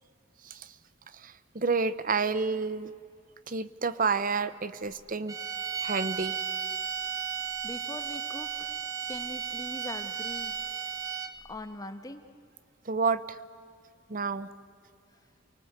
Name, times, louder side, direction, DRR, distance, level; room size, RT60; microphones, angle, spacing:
voice 1, 0.4-0.7 1.1-2.9 3.5-5.4 5.8-6.4 12.8-13.4 14.1-14.5, right 4 dB, 45° right, 15 dB, 0.9 m, -30 dB
sound 1, 5.3-11.5, right 7 dB, 15° right, 1.1 m, -34 dB
voice 2, 7.6-8.7 9.1-10.5 11.5-12.2, left 1 dB, 20° left, 8 dB, 1.3 m, -41 dB
29.0 x 19.0 x 8.1 m, 2.3 s
head